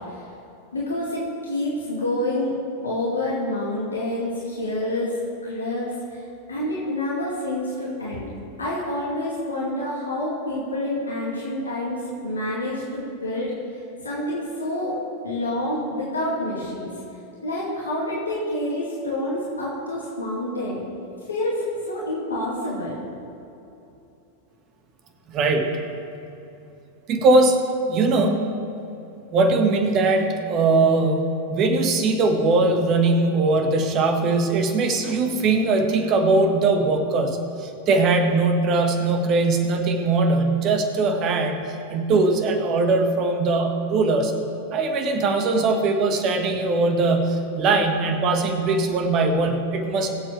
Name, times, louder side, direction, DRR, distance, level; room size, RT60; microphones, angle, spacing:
voice 1, 0.7-2.5 2.8-6.2 6.5-8.3 8.6-13.5 14.0-15.0 15.2-16.9 17.4-20.8 21.3-23.0, left 1 dB, 75° left, -5 dB, 2.3 m, -28 dB
voice 2, 25.3-25.7 27.1-27.6 27.9-28.4 29.3-31.2 31.5-41.6 41.9-44.3 44.7-50.1, right 3 dB, 35° right, 5 dB, 1.6 m, -20 dB
21.5 x 7.8 x 3.4 m, 2.8 s
figure-of-eight pair, 90°, 0 cm